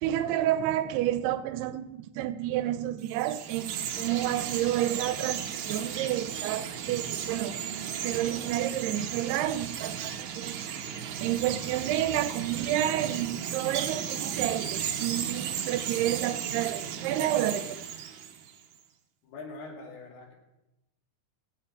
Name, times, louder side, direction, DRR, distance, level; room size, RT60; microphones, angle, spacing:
voice 1, 0.0-7.6 8.0-10.6 11.2-17.8, right 12 dB, 85° right, 2.7 m, -30 dB
Chirp tweet, 3.0-18.6, right 8 dB, 65° right, 2.0 m, -35 dB
voice 2, 19.2-20.3, left 3 dB, 75° left, 4.4 m, -43 dB
17.5 x 16.0 x 4.3 m
omnidirectional pair, 4.6 m